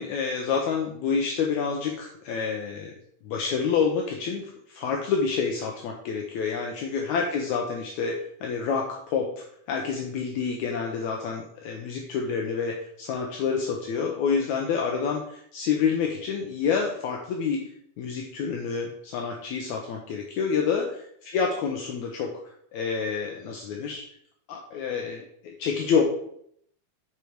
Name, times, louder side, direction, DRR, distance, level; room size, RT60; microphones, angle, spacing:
voice 1, 0.0-2.9 3.2-17.6 18.0-20.9 21.2-22.3 22.7-24.0 24.5-26.0, left 6 dB, 75° left, 1 dB, 1.7 m, -28 dB
8.5 x 4.6 x 5.0 m, 0.69 s
omnidirectional pair, 4.3 m